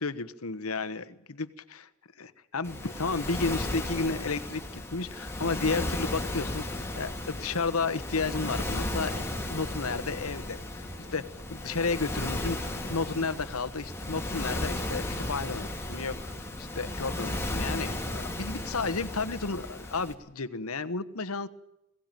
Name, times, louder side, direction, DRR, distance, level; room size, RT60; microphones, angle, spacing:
voice 1, 0.0-1.9 2.2-9.2 9.5-10.9 11.1-21.5, left 4 dB, 80° left, 12 dB, 1.3 m, -32 dB
Waves surf, 2.6-20.1, left 1 dB, 10° left, 2.7 m, -35 dB
sound 1, 8.7-17.6, right 1 dB, 30° right, 3.7 m, -48 dB
21.5 x 17.5 x 9.2 m, 0.83 s
head